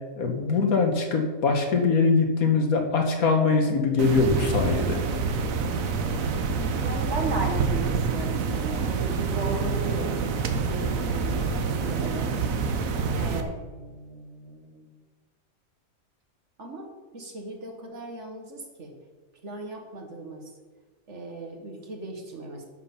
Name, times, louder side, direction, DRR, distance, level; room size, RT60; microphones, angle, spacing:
voice 1, 0.2-5.0, left 4 dB, 75° left, 4 dB, 1.8 m, -22 dB
sound 1, 4.0-13.4, right 5 dB, 70° right, 1.3 m, -27 dB
voice 2, 6.8-12.3 13.1-14.9 16.6-16.9 17.1-18.9 19.4-20.5 21.1-22.6, right 2 dB, 55° right, 2 dB, 1.9 m, -36 dB
10.5 x 7.4 x 5.7 m, 1.4 s
omnidirectional pair, 1.5 m